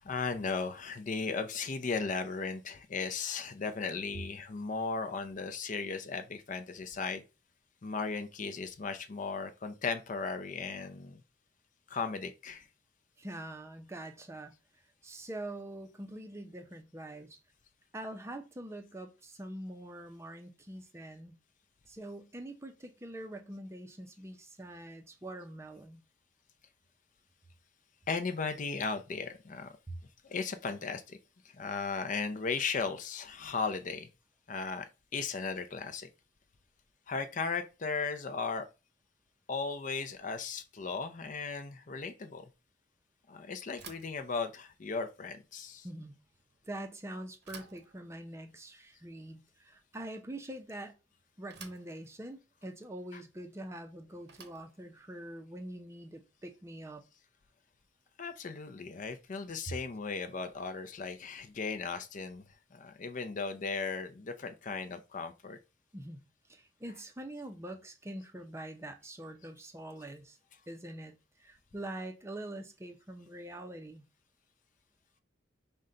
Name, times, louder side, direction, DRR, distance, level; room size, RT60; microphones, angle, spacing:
voice 1, 0.0-7.2 7.8-11.2 11.9-12.7 28.1-29.7 30.2-31.2 31.4-34.1 34.5-36.1 37.1-38.7 39.5-42.4 43.3-45.9 53.1-53.2 58.2-62.4 62.7-65.6 66.9-67.0, left 4 dB, 40° left, 0.5 m, -36 dB
voice 2, 13.2-14.5 15.0-17.4 17.9-21.4 21.9-26.0 29.9-30.0 45.8-46.1 46.6-50.9 51.4-57.0 65.9-66.2 66.5-70.4 70.7-74.0, right 1 dB, 15° right, 0.5 m, -44 dB
Bicycle / Thump thud, 43.8-56.8, right 6 dB, 60° right, 0.7 m, -57 dB
5.3 x 2.2 x 3.7 m
head